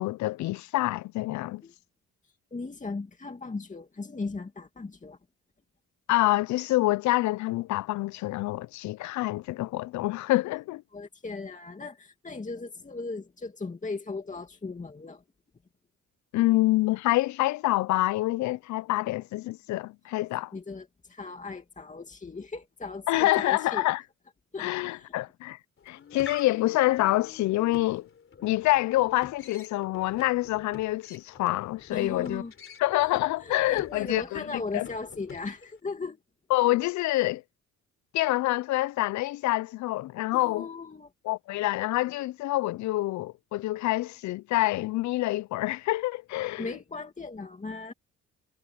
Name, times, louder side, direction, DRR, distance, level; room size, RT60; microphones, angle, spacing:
voice 1, 0.0-1.6 6.1-10.8 16.3-20.5 23.1-24.0 24.6-25.6 25.9-28.1 28.4-32.4 32.8-34.4 34.7-34.9 36.5-37.4 38.1-40.7 41.2-46.8, left 17 dB, 70° left, 0.5 m, -26 dB
voice 2, 2.5-5.2 10.9-15.2 20.5-23.9 24.5-25.1 31.9-32.5 33.4-36.2 40.3-41.1 46.6-47.9, left 3 dB, 25° left, 2.4 m, -37 dB
sound 1, 25.8-35.8, left 7 dB, 45° left, 3.4 m, -47 dB
cardioid pair, 90°, 30 cm